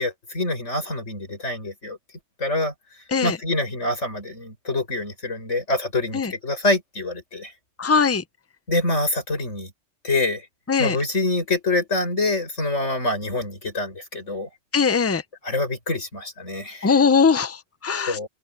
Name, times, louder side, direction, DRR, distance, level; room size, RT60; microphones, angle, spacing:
voice 1, 0.0-2.0 2.4-2.7 3.2-7.5 8.7-9.7 10.0-10.5 10.8-14.5 15.4-16.9 18.1-18.3, left 2 dB, 85° left, 7.1 m, -26 dB
voice 2, 7.8-8.2 10.7-11.0 14.7-15.2 16.8-18.2, left 5 dB, 20° left, 0.4 m, -20 dB
open air
omnidirectional pair, 1.2 m